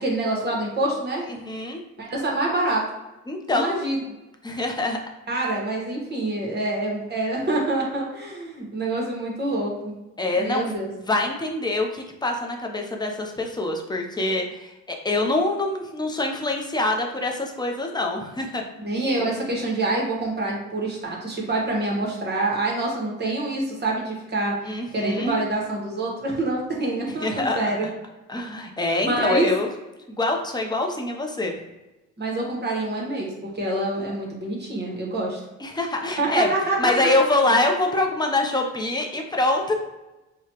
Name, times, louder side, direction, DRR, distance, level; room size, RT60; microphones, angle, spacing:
voice 1, 0.0-1.2 2.0-2.8 3.5-4.0 5.3-10.0 10.3-10.9 18.8-24.6 24.9-27.9 29.1-29.5 32.2-35.4 36.2-37.1, right 2 dB, 35° right, -2 dB, 1.2 m, -26 dB
voice 2, 1.3-1.8 3.3-3.8 4.4-5.0 10.2-10.6 11.1-18.6 24.6-25.4 27.2-27.7 28.3-29.7 30.1-31.5 35.6-36.5 36.8-39.7, left 2 dB, 15° left, 2 dB, 0.7 m, -25 dB
4.8 x 2.3 x 2.9 m, 1.0 s
cardioid pair, 90°, 30 cm